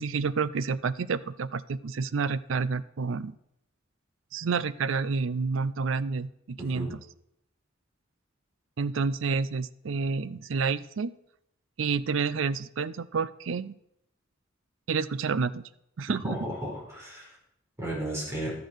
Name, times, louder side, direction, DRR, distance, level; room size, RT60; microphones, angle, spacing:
voice 1, 0.0-3.3 4.3-7.0 8.8-11.1 11.8-13.7 14.9-15.6 16.0-16.4, right 5 dB, 75° right, 17 dB, 0.5 m, -29 dB
voice 2, 6.6-6.9 16.2-17.4 17.8-18.5, right 1 dB, 15° right, -4 dB, 5.0 m, -34 dB
12.0 x 8.4 x 6.3 m, 0.78 s
head